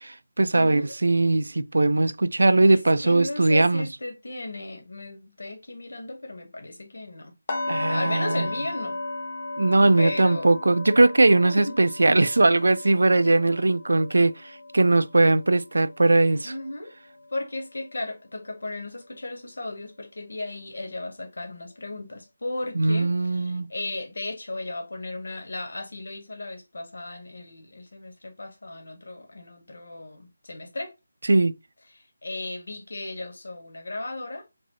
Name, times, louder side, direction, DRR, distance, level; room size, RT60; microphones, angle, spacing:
voice 1, 0.0-3.9 7.7-8.5 9.6-14.3 14.7-16.5 22.8-23.7 31.3-31.5, right 2 dB, 80° right, 0.4 m, -20 dB
voice 2, 0.5-0.9 2.7-7.3 7.9-9.0 10.0-10.6 11.5-11.8 16.4-16.9 17.3-30.9 31.9-34.5, left 2 dB, 75° left, 1.3 m, -35 dB
sound 1, 7.5-17.4 17.7-18.0 18.5-18.6, left 2 dB, 35° left, 0.7 m, -36 dB
3.9 x 2.6 x 2.8 m
figure-of-eight pair, 170°, 0 cm